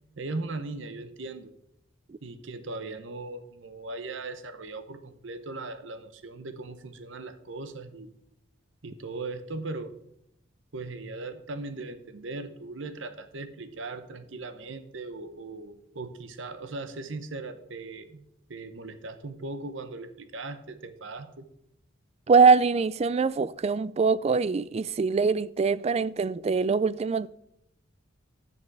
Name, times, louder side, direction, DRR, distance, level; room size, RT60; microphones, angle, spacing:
voice 1, 0.2-1.5 2.2-8.1 8.8-9.9 10.7-18.2 18.5-21.5, right 3 dB, 70° right, 0.8 m, -38 dB
voice 2, 22.3-27.3, right 5 dB, 30° right, 0.3 m, -23 dB
10.5 x 8.5 x 4.7 m
head